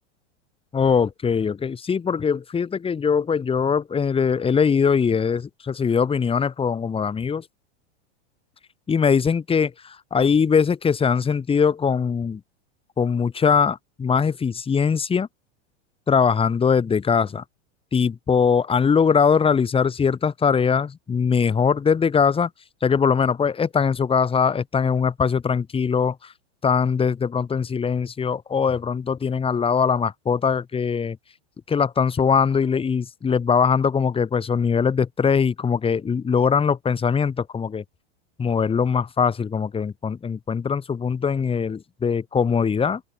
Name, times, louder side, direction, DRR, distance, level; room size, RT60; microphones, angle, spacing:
voice 1, 0.7-7.4 8.9-12.4 13.0-15.3 16.1-17.4 17.9-22.5 22.8-26.3 26.6-31.2 31.7-37.8 38.4-43.0, left 6 dB, 15° left, 2.3 m, -21 dB
open air
supercardioid pair, 130°, 35 cm